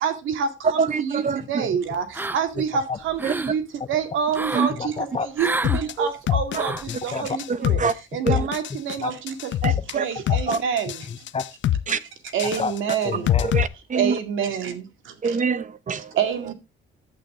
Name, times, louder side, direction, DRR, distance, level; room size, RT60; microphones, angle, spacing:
voice 1, 0.0-1.2 1.5-2.0 2.3-3.2 3.5-3.6 3.9-4.9 5.4-5.5 5.7-6.7 7.0-7.8 8.1-9.3 9.9-10.9 12.3-13.3 14.0-14.8 16.2-16.5, right 7 dB, 80° right, 2.2 m, -26 dB
voice 2, 0.8-1.4 3.2-3.3 4.5-4.7 6.0-6.1 6.5-6.6 7.8-7.9 8.2-8.4 9.6-10.0 10.5-10.6 11.9-12.0 13.5-14.1 15.2-16.1, right 5 dB, 40° right, 0.9 m, -24 dB
sound 1, 2.1-2.7 3.0-3.6 4.3-4.7 5.4-5.8 6.5-6.9, right 2 dB, 10° right, 0.4 m, -29 dB
voice 3, 4.7-5.3 6.7-7.4 7.7-7.9 8.3-8.4 9.0-9.1 10.3-10.4 11.1-11.4 12.6-12.7 13.0-13.5, left 5 dB, 30° left, 0.8 m, -30 dB
sound 2, 5.6-5.9 6.3-7.0 7.3-7.9 8.3-9.0 9.3-9.9 10.3-11.0 11.3-11.9 12.3-13.6, left 12 dB, 70° left, 0.8 m, -23 dB
11.0 x 8.5 x 3.7 m
cardioid pair, 90°, 20 cm